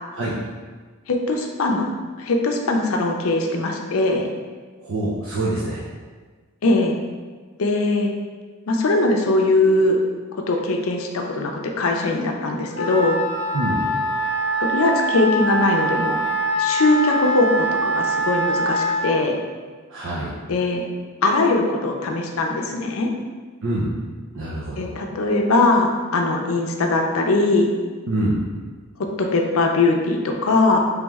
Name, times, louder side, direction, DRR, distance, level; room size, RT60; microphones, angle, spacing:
voice 1, 1.1-1.9 2.2-4.3 6.6-7.0 7.6-8.1 8.7-10.0 10.5-13.2 14.6-16.2 16.6-19.4 20.5-20.8 21.2-23.1 24.8-27.7 29.0-30.8, left 2 dB, 70° left, 2 dB, 0.5 m, -20 dB
voice 2, 4.8-5.8 13.5-13.8 19.9-20.3 23.6-23.9 24.3-24.9 28.1-28.4, right 1 dB, 65° right, -6 dB, 0.6 m, -25 dB
Wind instrument woodwind instrument, 12.7-19.1, right 1 dB, 30° left, 0.8 m, -23 dB
3.5 x 3.1 x 3.5 m, 1.4 s
head